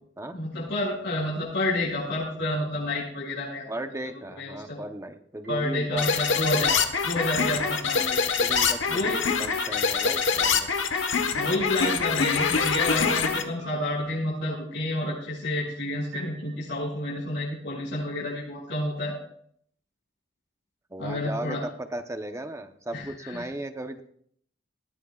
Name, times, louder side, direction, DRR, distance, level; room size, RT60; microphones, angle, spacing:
voice 1, 0.3-3.7 4.4-4.8 5.5-6.8 7.0-8.2 8.9-9.2 11.3-19.1 21.0-21.6 22.9-23.5, left 1 dB, 65° left, -8 dB, 6.3 m, -29 dB
voice 2, 3.7-6.1 6.6-6.7 7.6-7.7 8.4-10.7 11.4-11.7 20.9-24.0, right 1 dB, 15° right, 7 dB, 0.9 m, -36 dB
sound 1, 5.4-5.7 6.0-7.4 9.0-11.3 12.4-13.2 13.6-14.4 15.6-16.7, right 2 dB, 70° right, 6.2 m, -49 dB
sound 2, 6.0-13.4, left 5 dB, 90° left, 1.2 m, -25 dB
20.0 x 17.0 x 2.4 m, 0.64 s
head